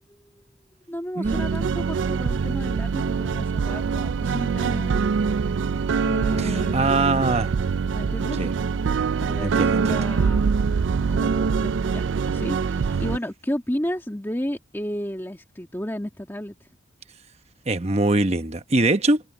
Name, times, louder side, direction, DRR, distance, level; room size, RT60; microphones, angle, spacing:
voice 1, 0.1-0.4 0.9-4.9 6.0-6.9 7.9-8.5 9.2-10.5 11.1-16.7, equal, 10° left, 1.8 m, -33 dB
sound 1, 1.2-13.2, right 5 dB, 80° right, 0.4 m, -24 dB
voice 2, 6.4-7.5 8.4-8.5 9.4-10.0 17.7-19.2, right 2 dB, 35° right, 1.0 m, -22 dB
head